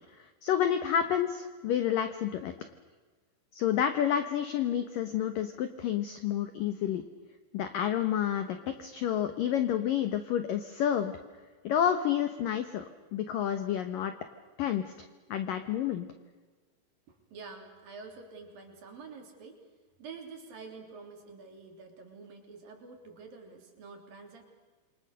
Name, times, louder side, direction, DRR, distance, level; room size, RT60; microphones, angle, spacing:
voice 1, 0.2-2.5 3.5-7.0 7.5-11.1 11.6-12.9 13.1-14.1 14.6-14.8 15.3-16.1, left 9 dB, 80° left, 9 dB, 2.0 m, -29 dB
voice 2, 17.1-19.6 20.0-24.4, right 4 dB, 50° right, 3 dB, 4.7 m, -48 dB
28.0 x 25.0 x 6.7 m, 1.4 s
omnidirectional pair, 5.6 m